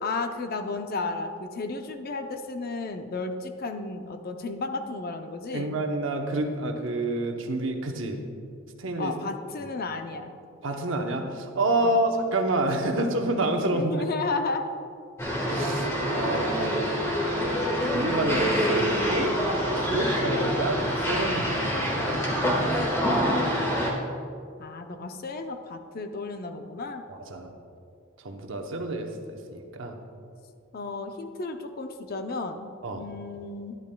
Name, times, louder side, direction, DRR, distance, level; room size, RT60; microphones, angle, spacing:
voice 1, 0.0-5.8 9.0-10.3 11.8-11.9 13.7-14.8 24.6-27.0 30.7-33.8, left 3 dB, 45° left, 7 dB, 0.5 m, -33 dB
voice 2, 5.5-8.2 8.8-9.1 10.6-14.0 15.5-16.9 17.8-19.3 19.8-22.2 22.8-22.9 27.1-27.5 28.2-30.0 32.8-33.1, right 2 dB, 65° right, 4 dB, 0.9 m, -28 dB
sound 1, 15.2-23.9, equal, 15° left, 1.4 m, -26 dB
12.0 x 10.5 x 2.2 m, 2.4 s
head